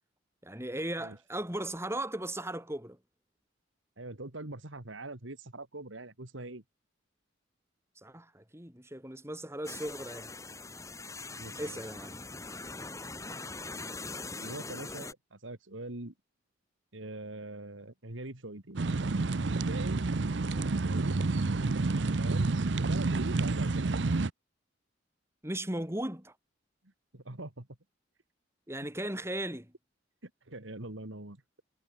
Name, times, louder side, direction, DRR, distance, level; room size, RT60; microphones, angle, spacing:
voice 1, 0.4-3.0 8.0-10.3 11.6-12.2 20.5-20.8 25.4-26.3 28.7-29.7, right 1 dB, 15° right, 5.5 m, -37 dB
voice 2, 4.0-6.6 11.4-11.8 14.4-16.1 16.9-18.8 19.7-20.3 20.8-21.3 22.2-23.9 27.1-27.7 30.2-31.4, right 2 dB, 80° right, 2.6 m, -43 dB
sound 1, 9.6-15.1, left 3 dB, 15° left, 4.2 m, -42 dB
sound 2, 18.8-24.3, right 3 dB, 65° right, 0.7 m, -29 dB
head